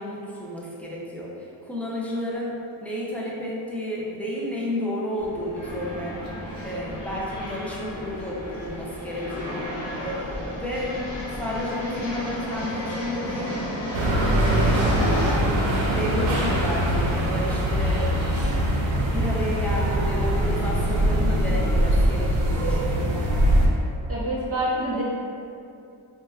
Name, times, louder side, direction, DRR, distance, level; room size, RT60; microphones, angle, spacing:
voice 1, 0.0-2.6 2.8-6.1 6.6-11.0 11.3-13.7 14.3-14.9 15.9-18.4 19.0-23.3, equal, 5° left, -6 dB, 0.3 m, -32 dB
sound 1, 5.2-15.3, left 1 dB, 60° left, 0.9 m, -32 dB
sound 2, 13.9-23.7, equal, 80° right, 0.6 m, -22 dB
voice 2, 24.1-25.0, right 1 dB, 30° right, -7 dB, 0.6 m, -26 dB
4.2 x 2.1 x 2.2 m, 2.6 s
wide cardioid pair, 170°, 46 cm